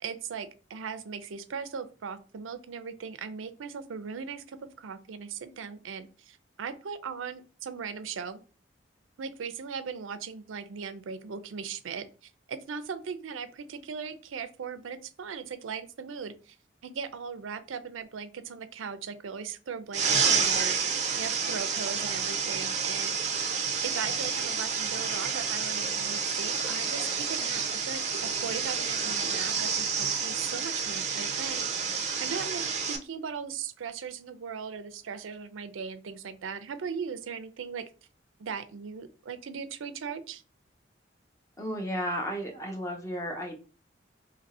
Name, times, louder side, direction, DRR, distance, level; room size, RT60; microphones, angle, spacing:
voice 1, 0.0-8.4 9.2-16.6 16.8-23.2 23.8-32.6 32.9-37.9 38.4-40.4, right 6 dB, 90° right, 11 dB, 0.5 m, -39 dB
sound 1, 19.9-33.0, right 6 dB, 35° right, 0.4 m, -29 dB
voice 2, 41.6-43.6, equal, 15° left, 2 dB, 0.7 m, -33 dB
2.8 x 2.6 x 4.1 m, 0.35 s
head